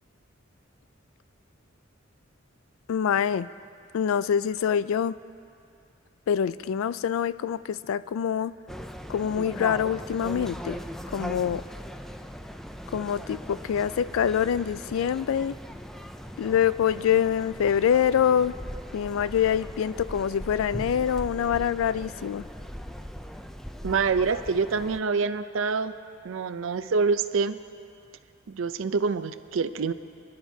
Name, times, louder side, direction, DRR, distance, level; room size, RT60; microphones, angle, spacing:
voice 1, 2.9-3.5 3.9-5.2 6.3-8.5 9.1-10.8 11.1-11.6 12.9-15.6 16.4-18.5 18.9-22.5, left 8 dB, 85° left, 17 dB, 0.3 m, -25 dB
sound 1, 8.7-25.0, equal, ahead, 0.4 m, -39 dB
voice 2, 23.8-25.9 26.2-27.6 28.5-29.9, right 5 dB, 75° right, 11 dB, 0.5 m, -26 dB
29.0 x 11.0 x 2.7 m, 2.5 s
head